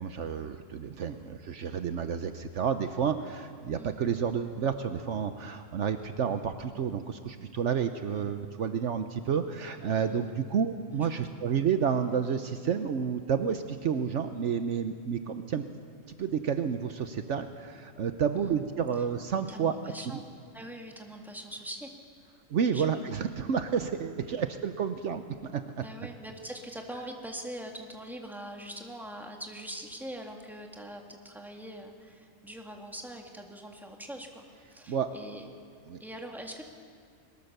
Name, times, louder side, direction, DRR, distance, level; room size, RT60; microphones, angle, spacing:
voice 1, 0.0-15.6 16.2-19.7 22.5-25.8 34.9-35.1 35.9-36.0, right 7 dB, 65° right, 8 dB, 1.1 m, -30 dB
voice 2, 3.7-4.0 10.0-10.4 10.9-11.1 11.4-11.5 18.4-18.6 19.5-20.2 20.5-21.9 22.7-23.0 25.8-34.4 34.7-35.5 36.0-36.6, right 1 dB, ahead, 2 dB, 2.0 m, -43 dB
22.0 x 20.5 x 6.7 m, 2.1 s
omnidirectional pair, 1.4 m